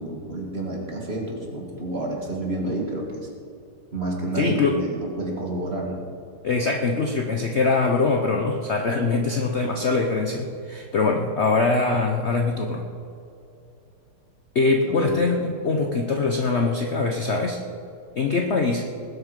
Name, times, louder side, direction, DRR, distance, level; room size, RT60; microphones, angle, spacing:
voice 1, 0.0-3.3 3.9-6.1 14.8-15.1, right 2 dB, 30° right, -1 dB, 2.3 m, -29 dB
voice 2, 4.3-4.8 6.4-12.9 14.5-17.6 18.1-18.8, left 3 dB, 65° left, 3 dB, 0.6 m, -23 dB
19.5 x 8.0 x 5.3 m, 2.6 s
omnidirectional pair, 2.4 m